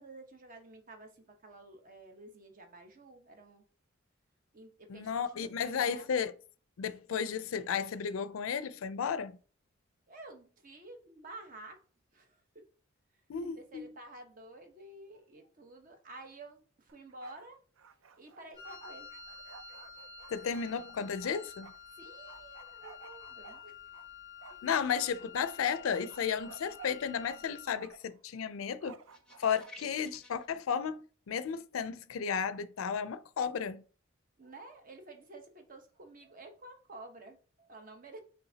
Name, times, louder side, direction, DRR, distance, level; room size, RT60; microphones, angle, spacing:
voice 1, 0.0-3.6 4.5-6.1 10.1-11.8 12.1-12.6 13.4-17.6 18.2-19.1 19.7-20.1 21.9-23.8 24.5-25.1 34.4-38.2, right 2 dB, 45° right, 0.9 m, -51 dB
voice 2, 4.9-6.3 6.8-9.4 13.3-13.9 20.3-21.7 24.6-29.0 29.4-33.8, left 7 dB, 80° left, 0.4 m, -33 dB
Bark, 16.9-17.5 17.8-21.8 22.3-24.1 24.4-27.4 27.7-28.1 28.8-29.7, right 6 dB, 80° right, 0.5 m, -53 dB
Wind instrument woodwind instrument, 18.5-27.8, left 6 dB, 20° right, 1.9 m, -50 dB
sound 1, 29.1-30.5, left 2 dB, 5° left, 0.7 m, -53 dB
5.5 x 3.5 x 2.8 m
head